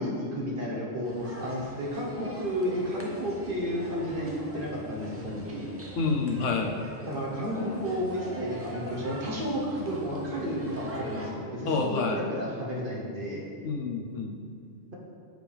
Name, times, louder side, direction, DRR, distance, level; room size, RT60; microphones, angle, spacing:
voice 1, 0.0-5.7 7.1-13.4, equal, 45° right, -3 dB, 1.2 m, -32 dB
sound 1, 1.0-11.3, equal, 15° right, 0.6 m, -42 dB
voice 2, 6.0-6.8 11.6-12.2 13.6-14.4, left 4 dB, 80° left, 3 dB, 1.1 m, -28 dB
7.7 x 5.0 x 3.4 m, 2.1 s
omnidirectional pair, 1.3 m